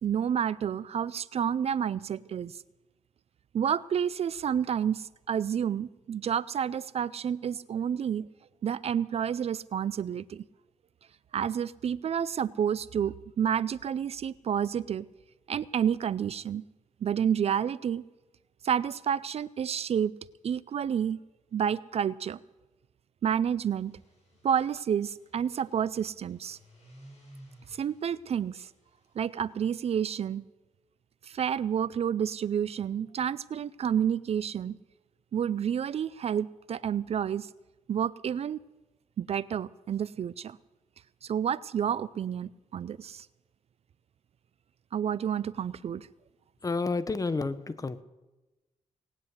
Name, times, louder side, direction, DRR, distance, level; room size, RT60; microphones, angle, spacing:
voice 1, 0.0-2.5 3.5-8.3 8.6-10.4 11.3-15.1 15.5-16.6 17.0-18.0 18.6-20.2 20.4-21.2 21.5-22.4 23.2-24.0 24.4-26.6 27.7-28.7 29.2-30.5 31.2-34.8 35.3-37.5 37.9-38.6 39.2-40.6 41.2-43.3 44.9-46.1, right 8 dB, 55° right, 19 dB, 0.4 m, -29 dB
sound 1, 23.6-29.9, right 1 dB, 60° left, 7.9 m, -57 dB
voice 2, 46.6-48.0, left 3 dB, 30° left, 13 dB, 0.9 m, -30 dB
18.5 x 9.7 x 8.0 m, 1.1 s
cardioid pair, 105°, 13 cm